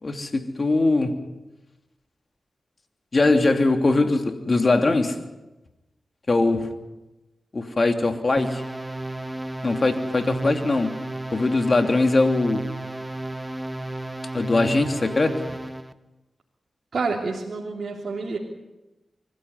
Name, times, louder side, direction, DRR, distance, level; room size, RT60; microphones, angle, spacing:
voice 1, 0.0-1.2 3.1-5.2 6.3-6.7 7.5-8.6 9.6-10.9 11.3-12.6 14.3-15.3, left 2 dB, 50° left, 5 dB, 3.0 m, -21 dB
sound 1, 8.4-15.9, right 2 dB, 15° right, 1.5 m, -32 dB
voice 2, 16.9-18.4, right 4 dB, 65° right, -2 dB, 3.2 m, -28 dB
25.0 x 15.5 x 9.7 m, 1.0 s
cardioid pair, 40°, 0 cm